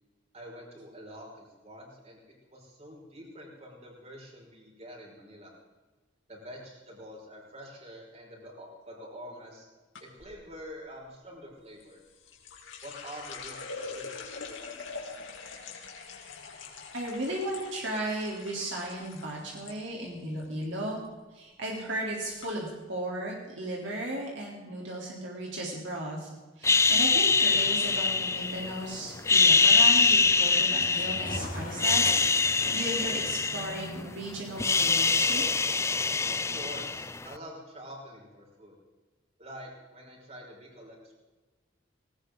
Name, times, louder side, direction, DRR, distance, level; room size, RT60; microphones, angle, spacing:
voice 1, 0.3-2.2 2.4-5.5 6.3-9.7 10.2-12.0 12.8-15.2 36.3-38.7 39.4-41.2, equal, 35° right, -2 dB, 5.9 m, -46 dB
sound 1, 9.9-10.3 11.8-19.8 20.0-20.6 21.0-21.3 22.0-22.1 22.4-22.5, left 4 dB, 85° left, 3.3 m, -43 dB
voice 2, 16.9-21.0 21.3-26.3 26.6-32.2 32.5-35.4, right 1 dB, 70° right, -3 dB, 3.7 m, -35 dB
sound 2, 26.6-28.8 29.2-31.4 31.7-34.1 34.4-37.3, left 4 dB, 15° left, 0.4 m, -24 dB
sound 3, 27.5-33.3, left 2 dB, 50° left, 2.2 m, -42 dB
19.5 x 18.5 x 4.0 m, 1.2 s
head